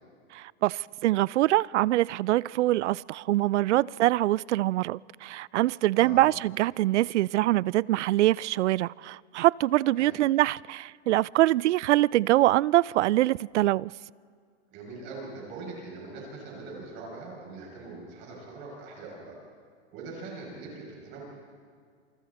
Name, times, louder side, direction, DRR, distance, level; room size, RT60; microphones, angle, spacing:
voice 1, 0.3-13.9, right 16 dB, 80° right, 0.5 m, -24 dB
voice 2, 5.9-6.4 10.0-10.1 14.7-19.3 19.9-21.2, right 3 dB, 30° right, 6.6 m, -42 dB
27.5 x 27.0 x 4.2 m
supercardioid pair, 165°, 34 cm